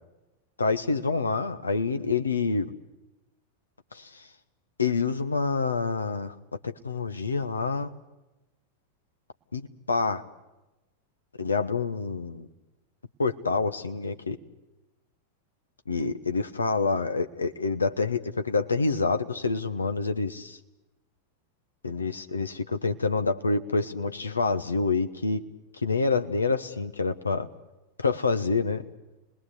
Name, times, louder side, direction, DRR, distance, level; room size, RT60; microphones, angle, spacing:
voice 1, 0.6-2.7 3.9-4.3 4.8-6.3 6.8-7.9 9.5-10.2 11.4-12.5 13.2-14.4 15.9-20.6 21.8-25.4 25.8-27.5 28.0-28.8, left 4 dB, 75° left, 8 dB, 1.3 m, -27 dB
29.5 x 20.5 x 8.4 m, 1.0 s
figure-of-eight pair, 90°, 0 cm